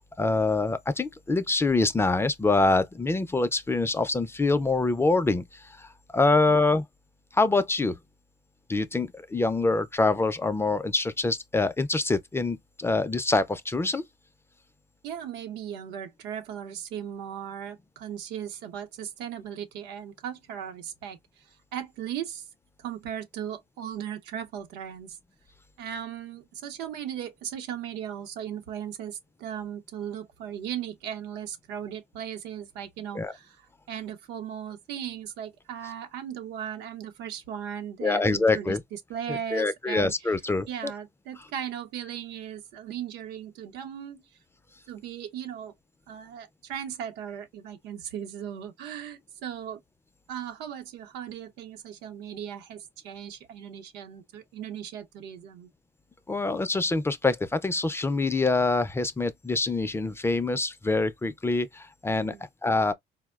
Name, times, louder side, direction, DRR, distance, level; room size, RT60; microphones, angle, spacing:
voice 1, 0.2-5.5 5.8-6.8 7.3-7.9 8.7-14.0 33.1-33.3 38.0-38.8 39.3-40.9 56.3-62.3 62.6-62.9, left 3 dB, 15° left, 0.4 m, -25 dB
voice 2, 15.0-21.2 21.7-22.4 22.8-25.2 25.8-40.4 40.7-44.2 44.9-45.7 46.1-49.8 50.3-55.7 62.2-62.4, right 9 dB, 90° right, 0.7 m, -37 dB
4.2 x 2.1 x 2.2 m
cardioid pair, 110°, 17 cm